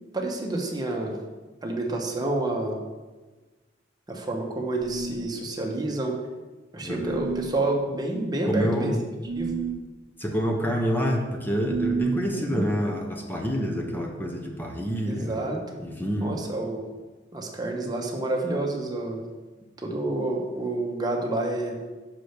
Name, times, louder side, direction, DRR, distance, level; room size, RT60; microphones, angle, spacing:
voice 1, 0.1-1.2 1.6-2.8 4.1-6.2 6.7-8.9 9.3-9.6 12.2-12.7 15.1-15.6 16.2-16.9 17.3-19.2 19.8-21.8, right 2 dB, 20° right, 0 dB, 1.1 m, -29 dB
sound 1, 4.8-5.4 7.0-7.6 9.2-9.9 11.6-12.3, right 5 dB, 45° right, 0.5 m, -30 dB
voice 2, 6.8-7.2 8.5-9.0 10.2-15.4 15.8-16.4, equal, 10° left, 1 dB, 0.8 m, -27 dB
5.8 x 5.0 x 6.5 m, 1.3 s
head